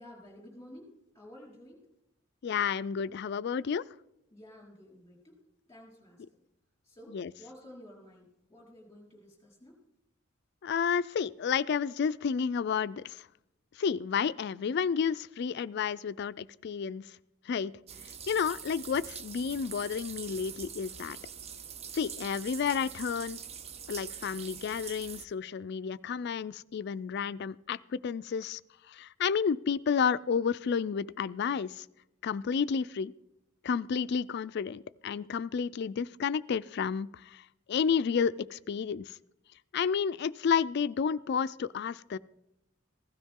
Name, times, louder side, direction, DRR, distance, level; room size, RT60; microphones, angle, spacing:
voice 1, 0.0-1.8 4.3-5.4 5.7-6.4 6.8-9.7, left 1 dB, 15° left, -1 dB, 4.5 m, -52 dB
voice 2, 2.4-3.8 7.1-7.3 10.6-13.1 13.8-17.0 17.5-17.7 18.3-21.2 21.9-23.4 23.9-28.6 29.0-31.8 32.2-33.1 33.6-37.1 37.7-39.1 39.7-42.2, left 6 dB, 60° left, 17 dB, 0.4 m, -31 dB
sound 1, 17.9-25.3, right 7 dB, 30° right, 0.5 m, -44 dB
15.5 x 13.0 x 3.7 m, 0.84 s
head